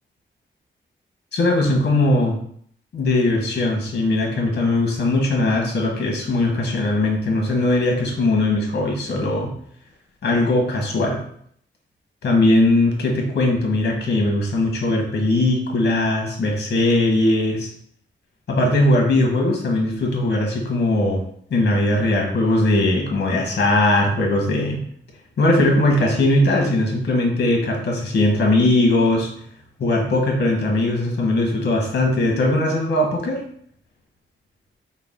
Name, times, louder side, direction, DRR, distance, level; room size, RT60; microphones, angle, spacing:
voice 1, 1.3-2.3 2.9-9.5 10.2-11.2 12.2-17.7 18.5-21.2 21.5-24.8 25.4-29.3 29.8-33.4, left 2 dB, 55° left, 0 dB, 1.2 m, -19 dB
5.1 x 2.3 x 3.6 m, 0.65 s
wide cardioid pair, 150°, 20 cm